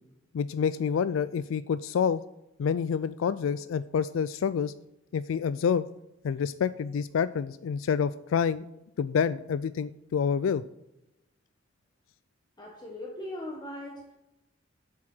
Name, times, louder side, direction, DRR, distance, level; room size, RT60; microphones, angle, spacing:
voice 1, 0.3-2.2 2.6-4.7 5.1-5.9 6.2-8.6 9.0-10.6, left 7 dB, 75° left, 0.3 m, -28 dB
voice 2, 12.6-14.1, left 1 dB, 20° left, 1.2 m, -39 dB
7.6 x 7.4 x 6.0 m
head